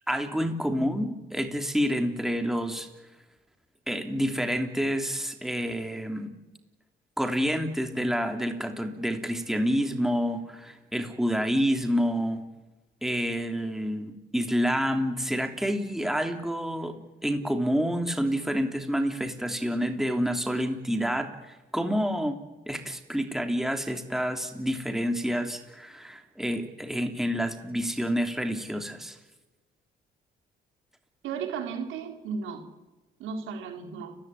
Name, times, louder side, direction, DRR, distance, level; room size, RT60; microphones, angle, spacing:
voice 1, 0.1-2.9 3.9-6.3 7.2-12.4 13.0-22.4 22.7-29.2, equal, ahead, 5 dB, 3.1 m, -28 dB
voice 2, 31.2-32.7 33.2-34.2, right 6 dB, 90° right, 4 dB, 4.2 m, -34 dB
30.0 x 15.5 x 9.7 m, 1.2 s
cardioid pair, 90°, 20 cm